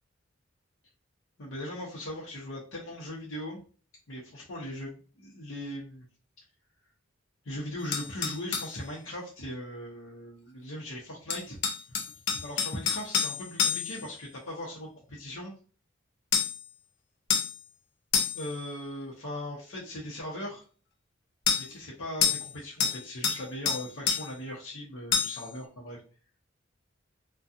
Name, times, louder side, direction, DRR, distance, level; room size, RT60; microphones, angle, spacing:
voice 1, 1.4-3.6 4.1-6.1 7.4-11.6 11.9-12.0 12.4-15.5 18.3-20.6 21.5-26.0, left 1 dB, 80° left, -5 dB, 0.8 m, -39 dB
sound 1, 7.9-8.7 11.3-14.1 16.3-16.6 17.3-17.6 18.1-18.5 21.5-21.7 22.2-22.5 22.8-23.4 23.7-24.3 25.1-25.4, left 6 dB, 55° left, 0.5 m, -28 dB
2.6 x 2.3 x 2.4 m, 0.38 s
head